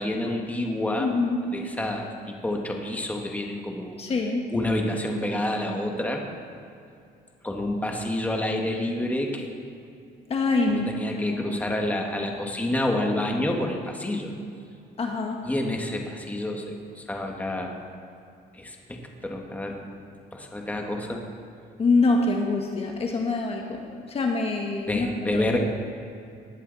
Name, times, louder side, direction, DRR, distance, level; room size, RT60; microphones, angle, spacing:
voice 1, 0.0-1.1 1.5-4.0 4.5-6.2 7.4-9.5 10.7-14.3 15.4-17.8 18.5-19.9 20.3-21.2 24.9-25.6, left 1 dB, 10° left, 1 dB, 1.8 m, -28 dB
voice 2, 1.0-1.4 4.0-4.5 10.3-10.9 11.3-11.6 15.0-15.4 21.8-25.4, left 3 dB, 35° left, 1 dB, 1.5 m, -25 dB
19.5 x 11.5 x 4.1 m, 2.5 s
cardioid pair, 110°, 17 cm